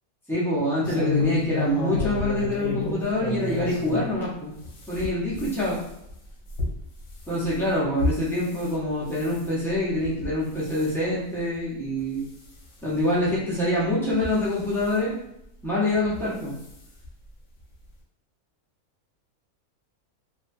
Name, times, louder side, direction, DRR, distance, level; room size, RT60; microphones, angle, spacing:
voice 1, 0.3-4.5 4.9-5.8 7.3-12.3 12.8-15.1 15.6-16.5, left 1 dB, 5° left, -9 dB, 0.4 m, -25 dB
sound 1, 0.8-4.1 4.6-8.7 9.1-9.5 10.0-10.3 10.6-10.9 11.5-11.6 12.0-12.1 13.2-13.3 14.1-14.9 16.1-16.2 16.6-16.7 17.0-17.1, left 3 dB, 65° left, 0.9 m, -30 dB
2.6 x 2.2 x 2.6 m, 0.80 s
omnidirectional pair, 1.6 m